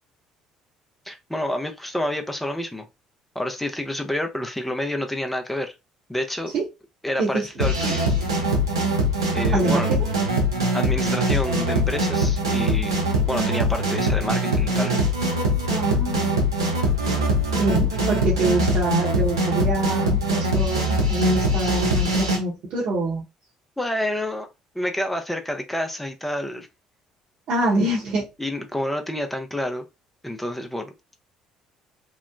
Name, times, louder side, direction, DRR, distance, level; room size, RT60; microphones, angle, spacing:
voice 1, 1.1-2.9 3.4-5.7 6.1-6.5 7.0-8.0 9.3-9.9 10.7-13.0 13.3-14.9 23.8-24.5 24.7-26.7 28.4-29.9 30.2-30.9, left 1 dB, 5° left, 0.5 m, -28 dB
sound 1, 7.6-22.4, equal, 85° right, 0.6 m, -22 dB
voice 2, 9.5-10.0 15.8-16.3 17.6-23.2 27.5-28.3, right 2 dB, 55° right, 0.9 m, -25 dB
2.9 x 2.1 x 2.4 m
figure-of-eight pair, 55°, 2 cm